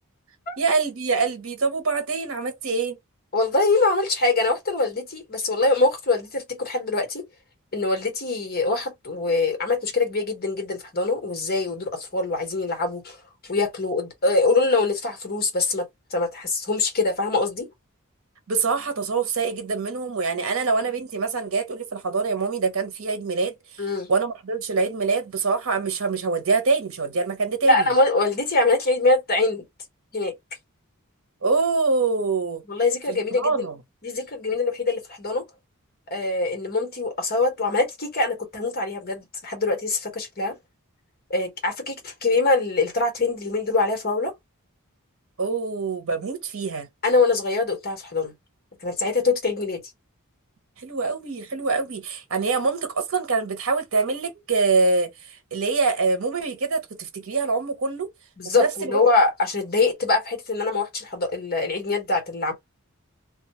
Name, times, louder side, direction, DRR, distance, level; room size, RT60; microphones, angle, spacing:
voice 1, 0.6-3.0 18.5-27.9 31.4-32.6 33.1-33.8 45.4-46.9 50.8-58.1 58.4-59.0, right 4 dB, 65° right, 0.8 m, -25 dB
voice 2, 3.3-7.2 7.7-13.2 13.4-15.8 16.1-17.7 23.8-24.1 27.6-29.6 30.1-30.3 32.7-33.7 34.0-35.4 36.1-40.6 41.3-44.3 47.0-48.3 48.8-49.8 58.4-62.5, left 3 dB, 45° left, 1.2 m, -23 dB
2.3 x 2.3 x 2.9 m
head